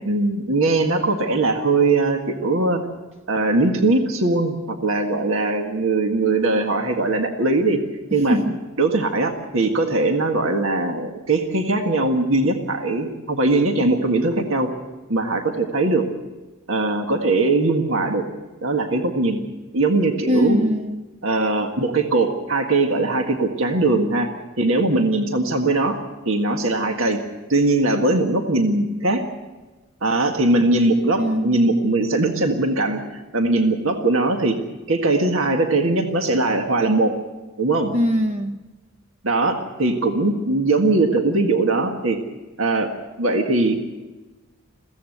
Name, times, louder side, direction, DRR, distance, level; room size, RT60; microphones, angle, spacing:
voice 1, 0.0-2.8 3.3-7.8 8.1-8.4 8.8-14.7 15.1-16.1 16.7-18.2 18.6-19.4 19.7-20.6 21.2-24.3 24.6-26.0 26.2-27.2 27.5-29.2 30.0-34.6 34.9-37.1 37.6-37.9 39.2-42.2 42.6-42.9 43.2-43.8, right 2 dB, 65° right, 4 dB, 1.7 m, -20 dB
voice 2, 20.3-21.0 31.2-31.7 37.9-38.6, equal, 30° right, 6 dB, 0.7 m, -21 dB
22.5 x 16.0 x 7.9 m, 1.2 s
head